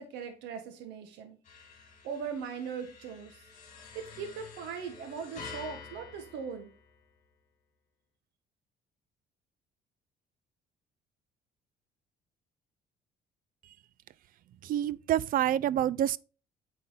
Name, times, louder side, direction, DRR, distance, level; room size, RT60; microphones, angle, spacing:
voice 1, 0.0-1.4 2.0-3.4 3.9-6.7, right 6 dB, 90° right, 1.3 m, -39 dB
sound 1, 1.4-7.2, left 5 dB, 45° left, 2.1 m, -49 dB
voice 2, 14.6-16.2, right 11 dB, 55° right, 0.4 m, -27 dB
9.0 x 4.2 x 3.9 m
cardioid pair, 110°, 17 cm